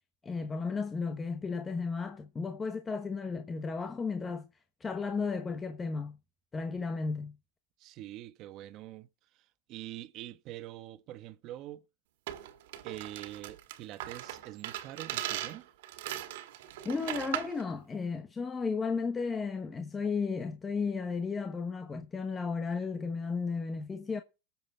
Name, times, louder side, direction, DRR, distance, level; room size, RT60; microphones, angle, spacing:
voice 1, 0.2-4.5 4.8-6.2 6.5-7.4 16.8-24.2, left 4 dB, 10° left, 1.0 m, -34 dB
voice 2, 7.8-9.1 9.7-11.8 12.8-15.7, right 14 dB, 35° right, 1.0 m, -44 dB
sound 1, 12.3-17.6, right 13 dB, 60° right, 2.0 m, -39 dB
19.5 x 7.5 x 4.4 m
supercardioid pair, 160°, 0 cm